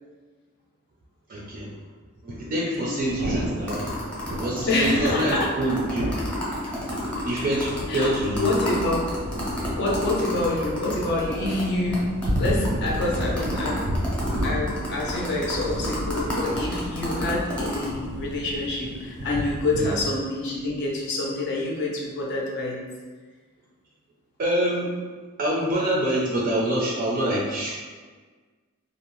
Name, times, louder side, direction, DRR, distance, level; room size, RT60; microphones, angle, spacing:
voice 1, 1.3-1.7 2.2-3.8 4.4-6.1 7.2-8.5 19.7-20.0 24.4-25.0 25.4-27.7, right 1 dB, 40° right, -4 dB, 0.4 m, -26 dB
Thunder / Rain, 3.0-20.1, equal, 90° right, 0.6 m, -32 dB
sound 1, 3.7-11.6 11.9-12.0 12.2-17.9, left 1 dB, 5° left, 0.6 m, -31 dB
voice 2, 4.7-5.5 7.9-8.1 8.4-9.1 9.8-12.1 12.4-13.8 14.4-22.8, left 2 dB, 50° left, -3 dB, 0.4 m, -27 dB
2.5 x 2.0 x 2.9 m, 1.4 s
head